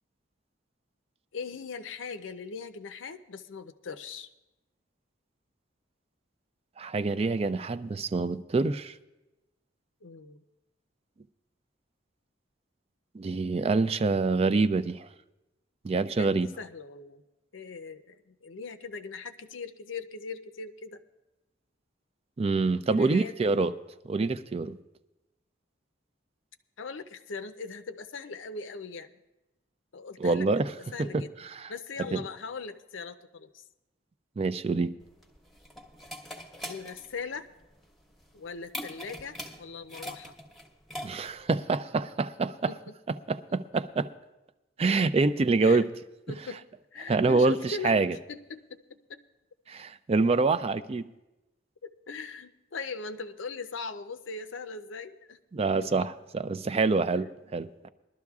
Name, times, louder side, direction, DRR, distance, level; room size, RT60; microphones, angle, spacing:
voice 1, 1.3-4.3 10.0-10.4 16.2-17.2 17.5-21.0 22.9-23.4 26.8-29.1 29.9-31.3 31.7-33.7 36.6-37.5 38.3-40.3 42.7-42.9 43.3-43.4 45.6-45.8 46.3-46.6 46.9-48.0 48.3-49.2 51.8-55.4 55.8-56.1 57.1-57.9, left 4 dB, 85° left, 0.6 m, -40 dB
voice 2, 6.8-8.9 13.1-15.1 15.8-16.5 22.4-23.7 24.1-24.8 30.2-30.7 31.0-31.7 32.1-32.2 34.4-34.9 41.0-42.7 43.3-44.1 44.8-45.9 47.1-48.2 49.7-51.1 55.5-57.9, right 3 dB, 35° right, 0.4 m, -26 dB
sound 1, 35.0-41.5, left 1 dB, ahead, 1.0 m, -43 dB
21.0 x 12.0 x 2.4 m
head